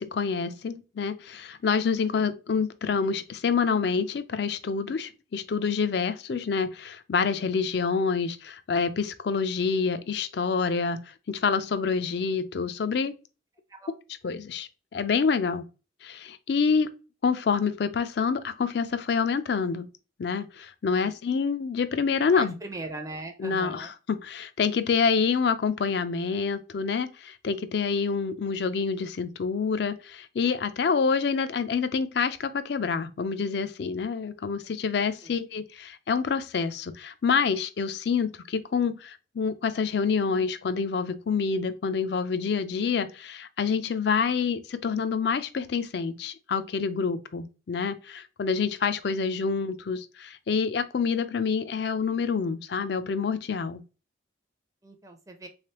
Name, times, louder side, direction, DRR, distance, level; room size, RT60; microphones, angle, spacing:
voice 1, 0.0-13.1 14.2-15.7 16.0-16.9 17.2-19.9 20.2-22.5 23.4-53.8, left 5 dB, 55° left, 0.4 m, -27 dB
voice 2, 22.3-23.9 35.2-35.4 54.8-55.5, right 2 dB, 15° right, 0.4 m, -40 dB
3.6 x 3.2 x 2.8 m
head